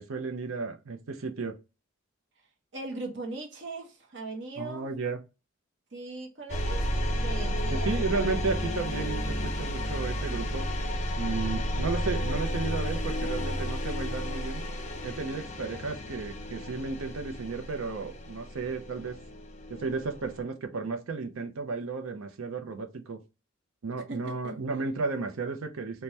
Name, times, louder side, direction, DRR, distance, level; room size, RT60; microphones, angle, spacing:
voice 1, 0.0-1.5 4.6-5.2 7.7-10.7 11.2-14.6 15.0-19.2 19.7-23.2 23.8-26.0, right 4 dB, 90° right, 0.6 m, -33 dB
voice 2, 2.7-4.9 5.9-7.9 24.1-24.2 24.4-24.6, right 3 dB, 60° right, 0.8 m, -39 dB
sound 1, 6.5-20.4, equal, 35° left, 0.4 m, -32 dB
3.3 x 2.1 x 2.7 m
head